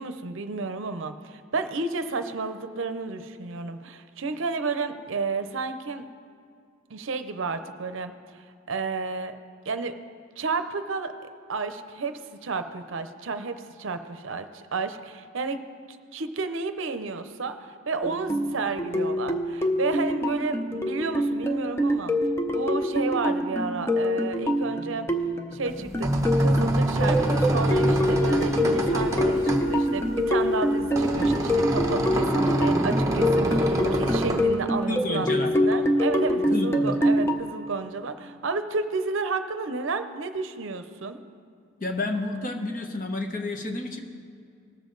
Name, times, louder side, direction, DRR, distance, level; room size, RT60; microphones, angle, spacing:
voice 1, 0.0-6.1 6.9-9.3 9.7-9.9 10.4-11.1 11.5-15.6 16.1-22.2 22.5-25.1 25.5-26.1 26.4-41.2, right 4 dB, 65° right, 9 dB, 0.6 m, -31 dB
sound 1, 18.0-37.4, equal, 10° left, 0.5 m, -25 dB
sound 2, 25.7-34.4, right 1 dB, 15° right, 0.8 m, -26 dB
Wind instrument woodwind instrument, 27.2-32.1, left 4 dB, 70° left, 2.7 m, -41 dB
voice 2, 34.9-35.7 36.4-37.0 41.8-44.0, left 2 dB, 40° left, 4 dB, 1.0 m, -30 dB
19.0 x 7.3 x 3.9 m, 2.4 s
head